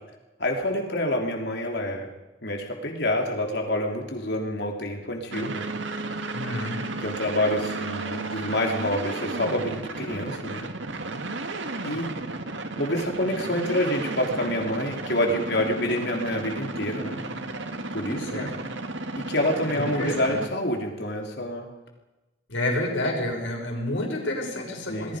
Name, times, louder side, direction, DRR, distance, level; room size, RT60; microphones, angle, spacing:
voice 1, 0.4-2.1 2.4-5.7 7.0-10.7 11.8-12.1 12.8-17.2 17.9-18.5 19.3-21.7 24.9-25.1, left 1 dB, 60° left, 2 dB, 3.6 m, -27 dB
sound 1, 5.3-20.5, right 2 dB, 80° right, 1.9 m, -33 dB
voice 2, 6.3-6.8 18.2-18.5 19.8-20.4 22.5-25.2, left 1 dB, 85° left, 0 dB, 6.7 m, -29 dB
27.5 x 20.5 x 5.3 m, 1.1 s
head